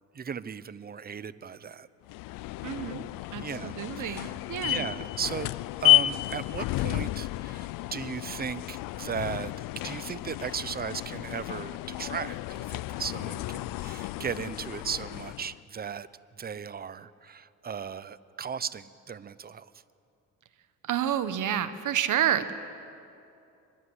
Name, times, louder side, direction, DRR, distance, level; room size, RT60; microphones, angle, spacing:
voice 1, 0.1-1.9 3.4-4.3 4.6-5.5 5.8-9.5 9.8-16.1 16.4-19.7, right 7 dB, 30° right, 17 dB, 0.7 m, -36 dB
sound 1, 2.1-15.6, left 17 dB, 90° left, 0.5 m, -31 dB
voice 2, 2.6-3.0 3.3-4.9 20.8-22.5, right 10 dB, 70° right, 12 dB, 1.4 m, -29 dB
24.5 x 21.5 x 8.1 m, 2.6 s
cardioid pair, 105°, 32 cm